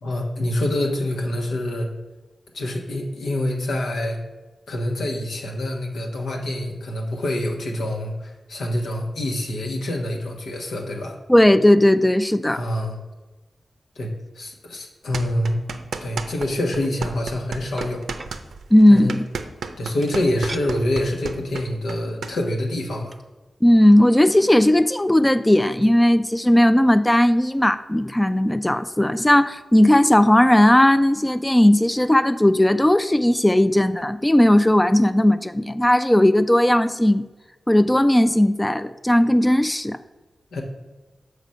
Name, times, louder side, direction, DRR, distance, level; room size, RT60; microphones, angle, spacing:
voice 1, 0.0-1.9 2.5-4.2 4.7-11.2 12.4-13.0 14.0-14.1 14.3-15.6 16.0-18.1 18.9-19.1 19.8-23.2 40.5-40.6, left 1 dB, 90° left, 1 dB, 1.1 m, -26 dB
voice 2, 11.3-12.6 18.7-19.2 23.6-37.2 37.7-40.0, left 1 dB, 15° left, 11 dB, 0.3 m, -16 dB
sound 1, 15.1-16.5 16.7-22.3, right 5 dB, 85° right, 0.5 m, -32 dB
sound 2, 16.8-17.0 17.8-18.4 20.0-20.7 21.2-21.3 21.6-21.9 22.8-22.9 23.1-23.3, right 2 dB, 35° right, 0.6 m, -39 dB
6.1 x 5.1 x 5.4 m, 1.2 s
cardioid pair, 45°, 0 cm